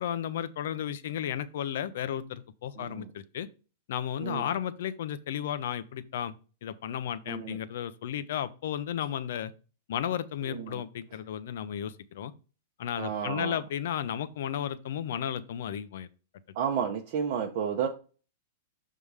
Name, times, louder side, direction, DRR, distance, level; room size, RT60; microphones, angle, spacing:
voice 1, 0.0-3.5 3.9-6.3 6.6-9.5 9.9-12.3 12.8-16.1, left 10 dB, 60° left, 0.6 m, -33 dB
voice 2, 7.3-7.6 10.5-10.8 13.0-13.6 16.6-17.9, right 7 dB, 45° right, 0.8 m, -31 dB
6.8 x 3.6 x 4.8 m
supercardioid pair, 170°, 0 cm